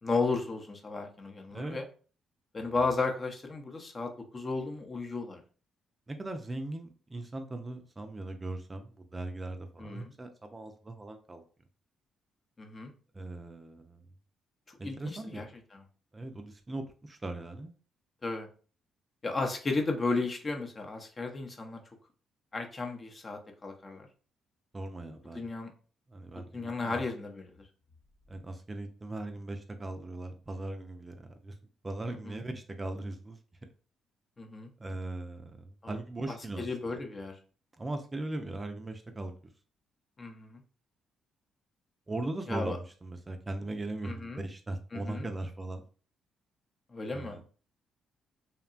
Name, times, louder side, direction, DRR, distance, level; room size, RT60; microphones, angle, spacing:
voice 1, 0.0-1.8 2.5-5.4 9.8-10.1 12.6-12.9 14.7-15.5 15.7-15.8 18.2-18.5 19.2-21.8 22.5-24.1 25.3-25.7 26.3-27.5 32.1-32.4 34.4-34.7 35.8-35.9 36.3-37.4 40.2-40.6 42.5-42.8 44.0-44.4 44.9-45.3 46.9-47.4, left 3 dB, 40° left, 3 dB, 0.6 m, -34 dB
voice 2, 6.1-11.4 13.1-14.0 14.8-15.4 16.1-17.7 24.7-25.5 26.1-27.0 28.3-31.5 31.8-33.7 34.8-37.0 37.7-39.3 42.1-45.8 47.1-47.4, right 2 dB, 25° right, 6 dB, 0.4 m, -39 dB
2.8 x 2.2 x 2.4 m, 0.39 s
supercardioid pair, 60°, 0 cm